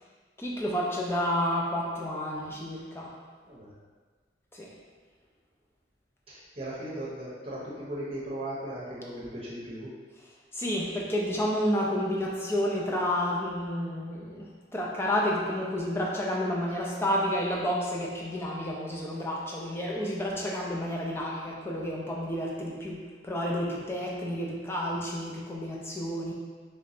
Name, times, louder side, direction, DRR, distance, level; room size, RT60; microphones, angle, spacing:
voice 1, 0.4-3.2 4.5-4.7 10.5-26.3, equal, 15° left, -4 dB, 0.4 m, -30 dB
voice 2, 6.3-9.9, right 1 dB, 35° right, -6 dB, 0.8 m, -37 dB
3.3 x 2.9 x 2.7 m, 1.5 s
head